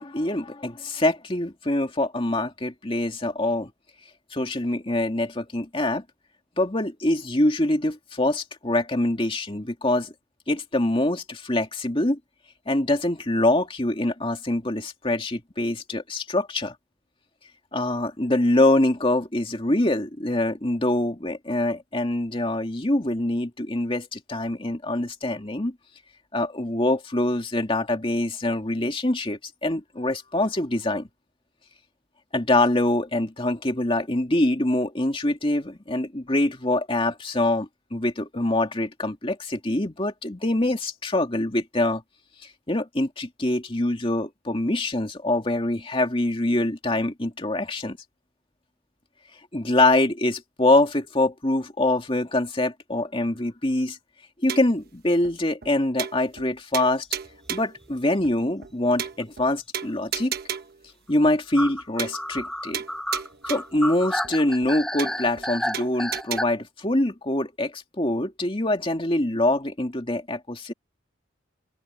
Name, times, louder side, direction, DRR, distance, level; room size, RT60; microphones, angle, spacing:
voice 1, 0.0-3.7 4.3-6.0 6.6-10.1 10.5-12.2 12.7-16.8 17.7-25.8 26.3-31.1 32.3-42.0 42.4-48.0 49.5-54.0 54.4-57.1 57.5-60.3 61.1-62.8 63.5-70.7, left 1 dB, 30° left, 2.3 m, -24 dB
sound 1, 54.5-54.8 55.2-55.3 55.6-55.7 56.0-56.5 56.7-57.8 58.2-58.3 58.6-58.7 59.0-59.5 59.7-60.8 61.2-61.3 61.6-61.7 62.0-62.5 62.7-63.8 64.2-64.3 64.6-64.7 65.0-65.5 65.7-66.4, right 8 dB, 50° right, 1.2 m, -33 dB
sound 2, 57.3-57.5 57.8-57.9 58.2-58.3 59.2-59.5 61.6-66.4, equal, 5° left, 0.6 m, -31 dB
open air
head